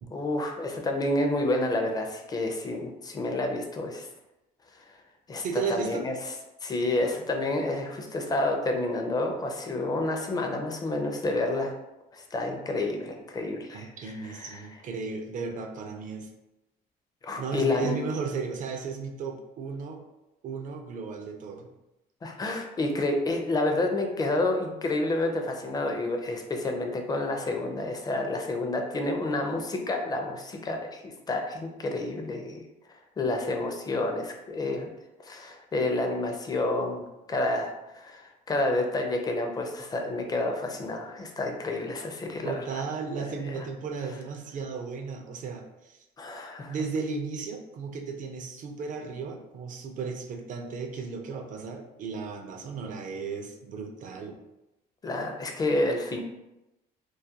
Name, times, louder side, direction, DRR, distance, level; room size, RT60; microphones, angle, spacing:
voice 1, 0.1-4.1 4.7-4.8 5.3-5.4 5.7-6.1 6.6-11.7 12.1-14.7 17.2-18.0 22.2-32.6 33.2-34.9 35.2-42.8 43.2-43.4 46.2-46.7 55.0-56.2, left 2 dB, 25° left, 3 dB, 0.4 m, -29 dB
voice 2, 5.4-6.1 13.7-16.3 17.4-20.0 20.4-21.7 42.4-46.0 46.7-54.4, right 5 dB, 50° right, 4 dB, 0.4 m, -35 dB
2.3 x 2.2 x 2.7 m, 0.94 s
cardioid pair, 110°, 17 cm